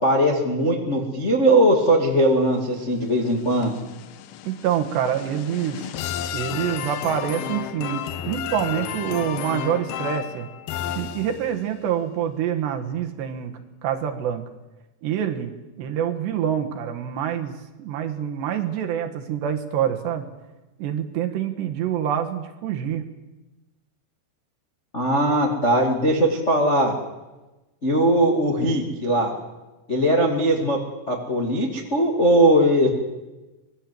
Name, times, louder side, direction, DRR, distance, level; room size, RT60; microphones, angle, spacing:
voice 1, 0.0-3.8 24.9-26.9 27.8-29.3 29.9-30.8 31.1-32.9, right 1 dB, 50° left, 1 dB, 0.8 m, -20 dB
sound 1, 2.8-11.7, left 10 dB, 90° left, 2.1 m, -33 dB
voice 2, 4.4-5.9 6.3-10.5 10.9-13.5 13.8-14.4 15.0-20.3 20.8-23.0, right 9 dB, 65° right, 5 dB, 3.2 m, -26 dB
25.0 x 20.0 x 7.7 m, 1.1 s
omnidirectional pair, 5.9 m